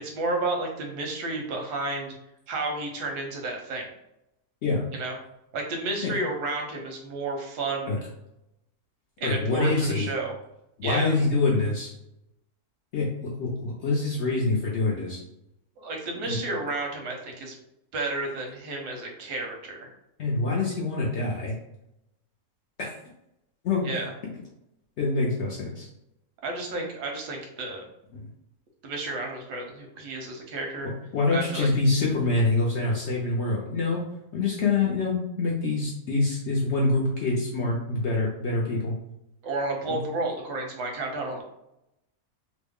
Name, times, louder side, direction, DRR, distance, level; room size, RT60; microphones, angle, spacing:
voice 1, 0.0-2.2 2.5-3.9 4.9-5.2 5.5-8.0 9.2-10.3 10.8-11.2 15.8-17.5 17.9-19.9 23.8-24.1 26.4-27.8 28.8-30.9 31.3-31.7 39.4-41.4, right 2 dB, 90° right, 2 dB, 1.3 m, -31 dB
voice 2, 9.2-10.1 10.8-11.9 12.9-15.2 16.3-16.4 20.2-21.5 22.8-23.0 23.6-23.9 25.0-25.9 28.1-28.2 31.1-34.0 34.3-38.9 39.9-40.0, left 3 dB, 70° left, -3 dB, 0.6 m, -25 dB
3.0 x 2.1 x 3.5 m, 0.85 s
omnidirectional pair, 1.7 m